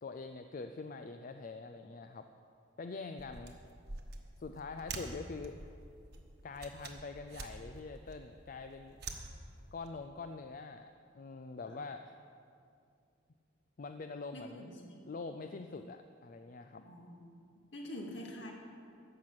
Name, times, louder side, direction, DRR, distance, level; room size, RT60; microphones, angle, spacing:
voice 1, 0.0-2.3 2.8-3.6 4.4-5.7 6.4-9.0 9.7-10.9 11.1-12.2 13.8-14.7 15.1-16.8, left 4 dB, 45° left, 7 dB, 0.4 m, -44 dB
sound 1, 3.2-9.9, right 3 dB, 55° right, 1.2 m, -48 dB
voice 2, 14.3-15.0 16.8-17.4 17.7-18.5, left 1 dB, 65° left, -1 dB, 2.1 m, -46 dB
14.0 x 6.0 x 8.7 m, 2.4 s
head